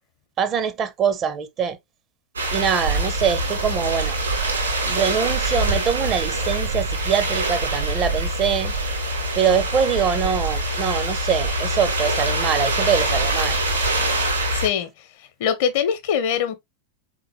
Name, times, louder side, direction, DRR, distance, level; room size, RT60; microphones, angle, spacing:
voice 1, 0.4-1.8 2.5-4.2 4.8-8.7 9.3-13.6, right 7 dB, 30° right, 0.7 m, -23 dB
sound 1, 2.4-14.7, right 2 dB, 75° right, 2.3 m, -24 dB
voice 2, 14.5-15.1 15.4-16.6, left 8 dB, 50° left, 0.9 m, -23 dB
4.1 x 3.8 x 3.1 m
figure-of-eight pair, 90°, 0 cm